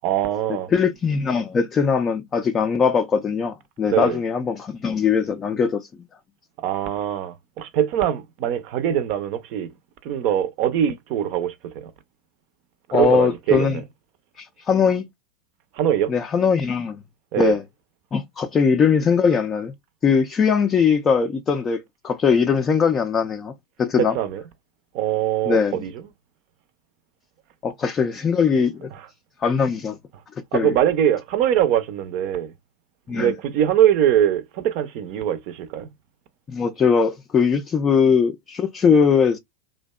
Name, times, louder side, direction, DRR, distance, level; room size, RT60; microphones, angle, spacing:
voice 1, 0.0-0.7 3.9-4.2 6.6-9.7 10.0-11.7 12.9-13.8 15.7-16.1 17.3-17.6 24.0-24.4 24.9-25.9 30.5-32.5 33.1-35.9, right 10 dB, 50° right, 0.5 m, -22 dB
voice 2, 0.7-5.9 12.9-13.8 14.4-15.0 16.1-17.0 17.4-17.6 18.1-19.7 20.0-23.5 23.8-24.2 25.5-25.8 27.6-28.9 29.4-30.0 30.5-30.8 33.1-33.3 36.5-39.4, left 6 dB, 25° left, 0.4 m, -20 dB
2.6 x 2.1 x 2.2 m
hypercardioid pair, 95°, 0 cm